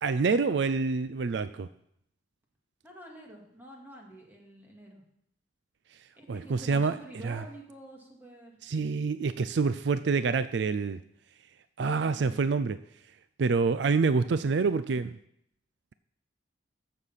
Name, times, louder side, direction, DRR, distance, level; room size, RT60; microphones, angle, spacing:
voice 1, 0.0-1.7 6.3-7.0 7.2-7.4 8.6-11.0 11.8-12.8 13.4-15.2, right 4 dB, 65° right, 13 dB, 0.4 m, -27 dB
voice 2, 2.8-5.0 6.2-8.6 12.1-12.4, right 1 dB, 10° right, -1 dB, 2.2 m, -48 dB
14.5 x 6.6 x 5.7 m, 0.75 s
head